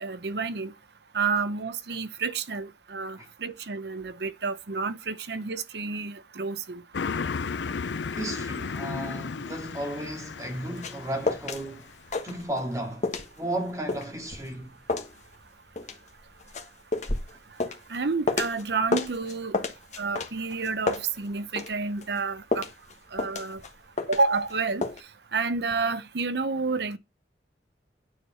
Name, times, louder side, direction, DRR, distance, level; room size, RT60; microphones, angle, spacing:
voice 1, 0.0-0.7 1.1-6.8 17.9-19.6 20.0-22.6 23.1-23.6 24.1-24.8 25.3-27.0, right 4 dB, 65° right, 0.8 m, -29 dB
Car passing by, 6.9-11.9, left 5 dB, 85° left, 0.5 m, -34 dB
voice 2, 8.1-11.9 12.2-13.1 13.4-14.7, right 1 dB, 20° right, 2.2 m, -34 dB
sound 1, 10.4-11.6 11.9-12.8 13.0-18.6 18.9-21.7 22.0-24.5 24.8-25.0, left 3 dB, 40° left, 1.4 m, -31 dB
9.7 x 4.8 x 5.6 m
head